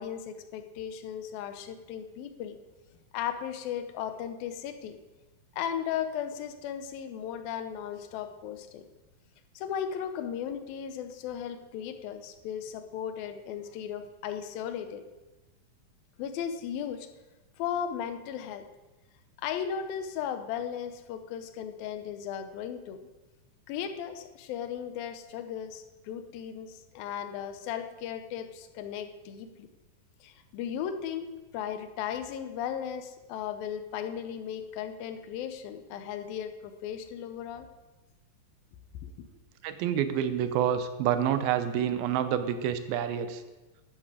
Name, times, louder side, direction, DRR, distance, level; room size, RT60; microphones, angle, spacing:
voice 1, 0.0-2.6 3.1-5.0 5.5-8.8 9.6-15.1 16.2-17.1 17.6-18.7 19.4-23.0 23.7-29.7 30.2-37.7 39.0-39.1, left 8 dB, 85° left, 9 dB, 2.7 m, -36 dB
voice 2, 39.6-43.4, right 9 dB, 90° right, 11 dB, 2.7 m, -28 dB
12.5 x 10.5 x 4.9 m, 1.1 s
omnidirectional pair, 4.1 m